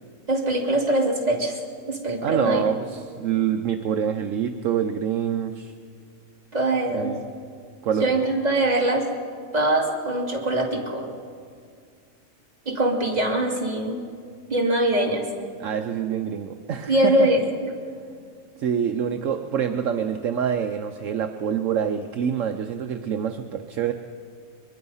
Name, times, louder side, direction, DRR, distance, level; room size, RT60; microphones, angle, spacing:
voice 1, 0.3-1.6 1.9-2.7 6.5-7.2 8.0-9.1 9.5-11.1 12.7-14.0 14.5-15.3 16.9-17.4, right 1 dB, 30° right, -1 dB, 2.8 m, -22 dB
voice 2, 2.2-5.7 6.9-7.3 7.8-8.1 15.6-17.3 18.6-23.9, right 8 dB, 65° right, 6 dB, 1.1 m, -26 dB
23.0 x 22.0 x 5.6 m, 2.2 s
omnidirectional pair, 1.5 m